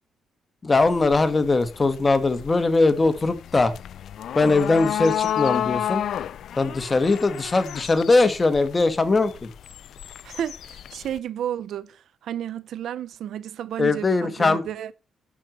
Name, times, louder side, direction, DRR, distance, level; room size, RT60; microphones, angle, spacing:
voice 1, 0.6-3.7 4.3-6.0 6.5-9.5 13.8-14.6, left 3 dB, 25° left, 1.7 m, -20 dB
sound 1, 0.8-11.2, left 10 dB, 70° left, 0.4 m, -32 dB
voice 2, 10.2-14.9, right 10 dB, 75° right, 0.6 m, -32 dB
10.0 x 4.7 x 7.7 m
cardioid pair, 90°, 0 cm